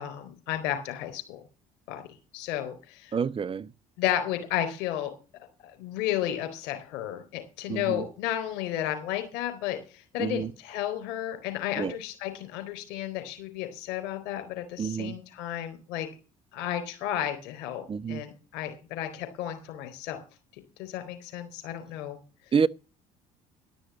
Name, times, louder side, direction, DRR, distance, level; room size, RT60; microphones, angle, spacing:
voice 1, 0.0-1.4 1.9-2.0 2.3-3.1 4.0-5.1 5.6-16.1 16.5-20.2 20.8-22.2, left 12 dB, 70° left, 4.0 m, -33 dB
voice 2, 3.1-3.7 7.7-8.1 10.2-10.5 11.8-12.0 14.8-15.2 17.9-18.2 22.5-22.7, right 6 dB, 30° right, 0.6 m, -28 dB
12.0 x 6.3 x 8.5 m
hypercardioid pair, 55°, 19 cm